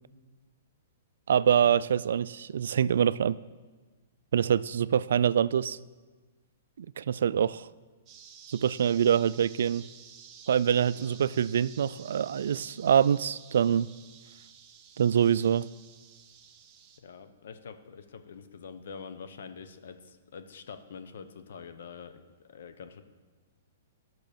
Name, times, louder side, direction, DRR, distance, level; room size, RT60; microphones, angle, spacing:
voice 1, 1.3-3.4 4.3-5.8 6.8-7.7 8.5-9.8 10.5-13.9 15.0-15.7, right 8 dB, 75° right, 0.3 m, -25 dB
sound 1, 8.1-17.0, right 7 dB, 25° right, 1.0 m, -52 dB
voice 2, 10.9-11.4 17.0-23.0, left 6 dB, 70° left, 1.0 m, -46 dB
14.0 x 6.2 x 5.2 m
hypercardioid pair, 145°, 0 cm